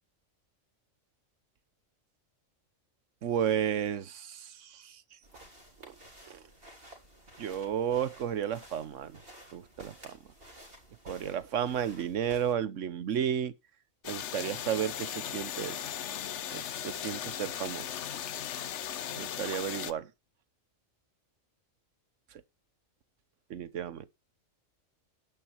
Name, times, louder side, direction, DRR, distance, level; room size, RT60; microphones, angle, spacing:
voice 1, 3.2-5.0 5.8-5.9 6.3-6.4 7.4-9.2 9.5-10.2 11.0-13.5 14.1-15.8 16.5-18.0 19.1-20.1 23.5-24.0, right 9 dB, 70° right, 1.2 m, -33 dB
sound 1, 5.2-12.5, right 1 dB, 45° right, 4.0 m, -53 dB
sound 2, 14.0-19.9, left 10 dB, 65° left, 1.0 m, -37 dB
10.5 x 9.2 x 4.5 m
omnidirectional pair, 1.4 m